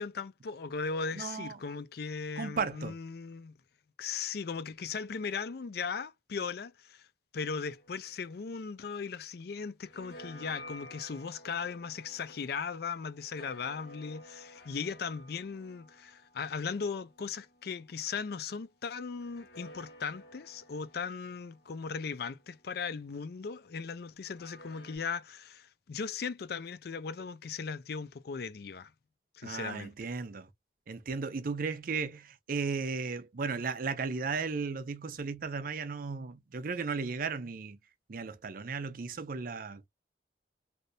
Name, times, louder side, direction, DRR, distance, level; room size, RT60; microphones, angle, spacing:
voice 1, 0.0-3.5 4.0-7.1 7.3-28.9 29.3-29.9, left 5 dB, 60° left, 0.4 m, -38 dB
voice 2, 1.1-1.6 2.4-3.0 29.4-30.5 30.9-37.8 38.1-39.9, right 4 dB, 50° right, 0.5 m, -35 dB
sound 1, 7.7-9.4 9.6-18.3 19.2-23.3 24.2-25.0, left 1 dB, 80° left, 1.2 m, -54 dB
3.3 x 2.6 x 2.6 m
head